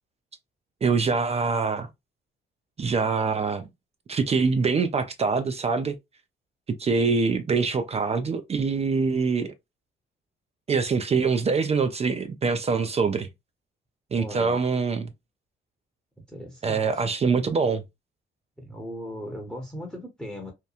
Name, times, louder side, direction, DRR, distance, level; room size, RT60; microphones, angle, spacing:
voice 1, 0.8-1.9 2.8-3.7 4.1-6.0 6.8-9.5 10.7-13.3 14.1-15.1 16.6-17.8, right 5 dB, 30° right, 0.4 m, -24 dB
voice 2, 14.2-14.6 16.3-17.1 18.6-20.5, equal, 5° left, 0.8 m, -38 dB
2.9 x 2.2 x 2.3 m
cardioid pair, 90°, 20 cm